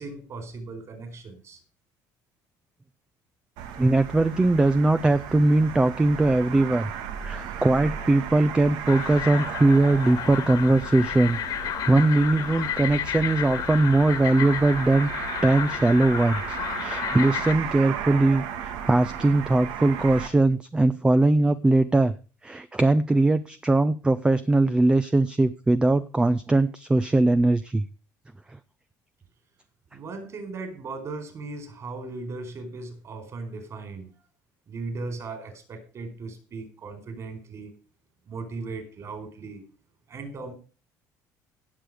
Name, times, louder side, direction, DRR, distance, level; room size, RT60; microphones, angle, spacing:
voice 1, 0.0-1.6 29.9-34.1 34.7-37.7 38.3-39.7 40.1-40.5, right 3 dB, 40° right, 7 dB, 4.5 m, -37 dB
sound 1, 3.6-20.3, right 8 dB, 85° right, 1.9 m, -36 dB
voice 2, 3.8-6.9 7.2-15.1 15.4-22.1 22.4-27.8, right 2 dB, 10° right, 12 dB, 0.6 m, -21 dB
sound 2, 8.8-17.5, left 10 dB, 60° left, 1.8 m, -32 dB
17.0 x 6.8 x 4.9 m, 0.35 s
cardioid pair, 125°, 7 cm